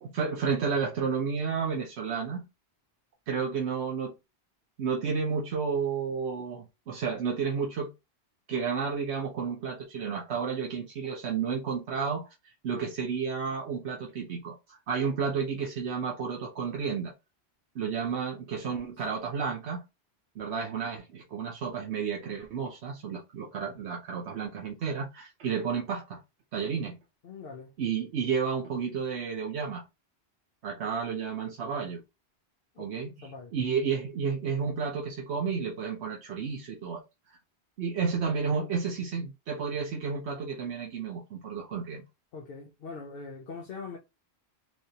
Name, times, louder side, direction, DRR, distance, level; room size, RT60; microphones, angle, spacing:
voice 1, 0.0-2.4 3.3-4.1 4.8-7.9 8.5-12.2 12.6-14.6 14.9-17.1 17.7-19.8 20.4-26.2 26.5-27.0 27.8-29.8 30.6-32.0 32.8-37.0 37.8-42.0, right 6 dB, 85° right, 1.0 m, -31 dB
voice 2, 27.2-27.7 32.8-32.9 33.2-33.5 42.3-44.0, left 4 dB, 65° left, 0.9 m, -42 dB
3.3 x 3.0 x 2.8 m
omnidirectional pair, 1.1 m